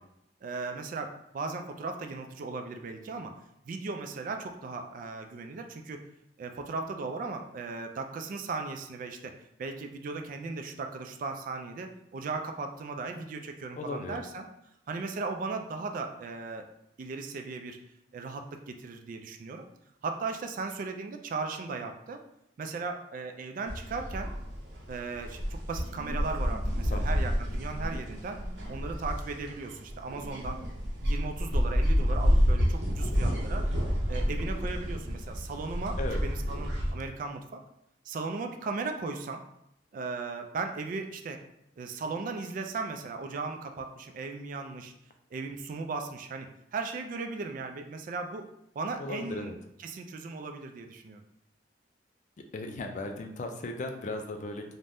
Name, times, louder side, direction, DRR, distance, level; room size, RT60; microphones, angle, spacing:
voice 1, 0.4-3.4 3.7-6.0 6.4-9.3 9.6-14.5 14.9-16.7 17.0-17.8 18.1-19.6 20.0-22.2 22.6-24.3 24.9-28.4 28.7-30.6 31.0-33.7 34.1-37.6 38.0-39.4 39.9-41.4 41.8-44.9 45.3-48.5 48.8-49.5 49.8-51.2, right 4 dB, 50° right, 5 dB, 0.3 m, -37 dB
voice 2, 13.8-14.2 26.9-27.3 36.0-36.2 49.0-49.5 52.5-54.7, left 2 dB, 45° left, 4 dB, 0.3 m, -36 dB
sound 1, 23.7-36.9, equal, 75° right, 0.7 m, -29 dB
2.6 x 2.1 x 3.3 m, 0.80 s
head